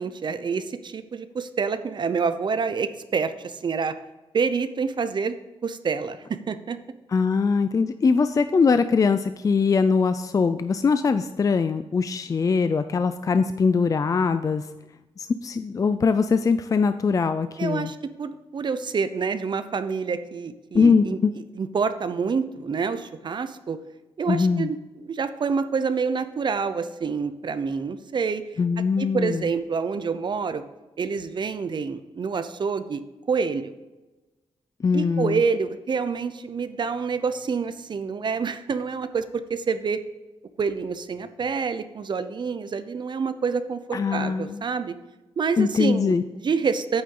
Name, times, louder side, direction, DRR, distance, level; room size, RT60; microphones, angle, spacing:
voice 1, 0.0-3.9 4.3-5.4 5.6-6.8 17.6-21.2 21.6-23.8 24.2-28.6 29.0-30.6 31.0-33.0 33.3-33.7 34.9-40.0 40.6-44.9 45.4-47.0, right 5 dB, 50° right, 11 dB, 0.7 m, -27 dB
voice 2, 7.1-14.7 15.2-17.9 20.7-21.3 24.3-24.7 28.6-29.5 34.8-35.4 43.9-44.6 45.6-46.2, left 5 dB, 35° left, 10 dB, 0.4 m, -22 dB
8.8 x 8.5 x 3.8 m, 1.1 s
wide cardioid pair, 120°, 10 cm